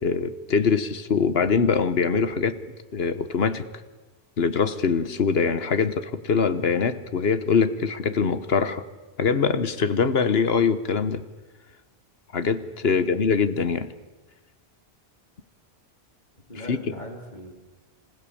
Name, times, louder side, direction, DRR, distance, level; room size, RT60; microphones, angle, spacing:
voice 1, 0.0-2.6 2.9-3.7 4.4-8.8 9.2-11.2 12.3-13.9 16.5-16.8, left 5 dB, 65° left, 12 dB, 1.3 m, -23 dB
voice 2, 12.8-13.3 16.5-17.5, left 1 dB, 45° left, 1 dB, 3.3 m, -39 dB
26.0 x 15.5 x 8.6 m, 1.2 s
omnidirectional pair, 1.1 m